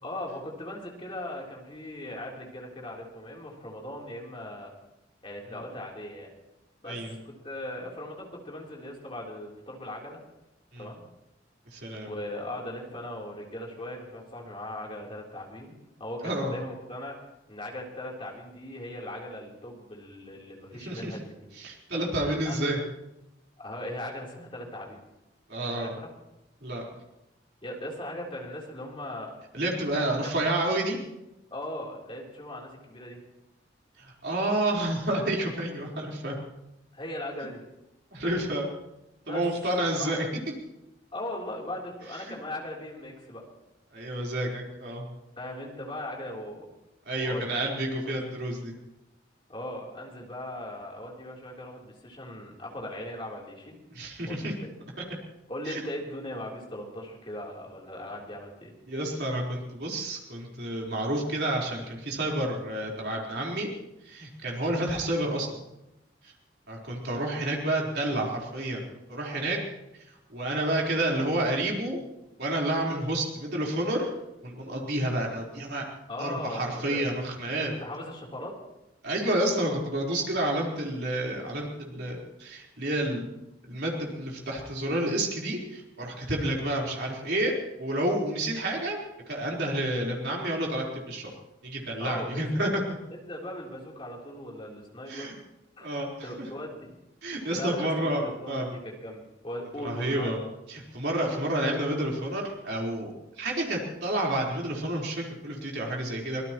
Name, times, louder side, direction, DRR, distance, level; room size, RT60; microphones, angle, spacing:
voice 1, 0.0-4.7 5.2-6.3 6.8-7.0 7.3-10.2 10.8-11.0 12.0-17.1 17.5-21.4 22.5-22.6 23.6-25.0 25.7-26.1 27.6-29.3 29.9-30.3 31.5-33.2 36.9-37.6 39.2-39.4 40.0-40.1 41.1-43.4 45.4-46.7 47.2-47.4 48.0-48.2 49.5-53.8 54.3-54.5 55.5-58.7 68.1-68.3 76.1-76.6 76.9-77.0 77.8-78.5 92.0-92.6 93.3-95.3 95.8-95.9 96.2-96.9 97.5-100.3, left 1 dB, 30° left, -2 dB, 3.6 m, -39 dB
voice 2, 11.7-12.1 16.2-16.5 20.8-21.2 21.5-22.8 25.5-25.9 26.6-26.8 29.5-31.0 34.0-36.3 38.1-38.7 39.3-40.2 42.3-42.4 43.9-45.0 47.1-48.7 53.9-54.5 55.7-55.8 58.9-63.7 64.0-65.5 66.7-68.8 69.1-69.6 70.3-72.0 72.4-74.1 74.4-75.8 76.2-77.7 79.0-83.3 83.6-87.5 87.8-89.0 89.3-91.3 91.6-93.0 95.1-95.3 95.8-96.5 97.2-98.7 99.8-100.4 100.7-106.4, right 1 dB, 60° right, -2 dB, 4.2 m, -29 dB
24.5 x 18.5 x 3.1 m, 0.91 s
head